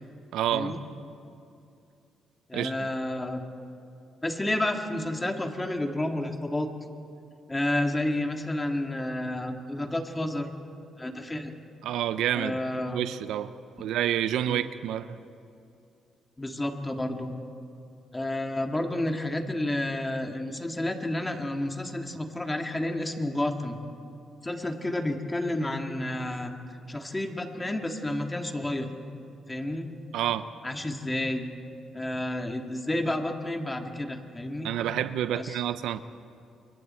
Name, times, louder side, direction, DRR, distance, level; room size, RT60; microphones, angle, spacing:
voice 1, 0.3-0.9 2.5-2.7 11.8-12.6 12.9-13.5 13.8-15.2 30.1-30.5 34.6-36.0, right 11 dB, 85° right, 13 dB, 0.7 m, -28 dB
voice 2, 2.5-3.4 4.2-6.7 7.5-10.5 11.0-11.5 12.3-13.0 14.5-14.6 16.4-17.3 18.1-23.8 24.4-26.6 26.9-28.9 29.5-29.9 30.6-31.5 31.9-34.7 35.3-35.6, left 1 dB, 15° left, 4 dB, 2.0 m, -30 dB
28.5 x 23.0 x 4.4 m, 2.6 s
cardioid pair, 90°, 0 cm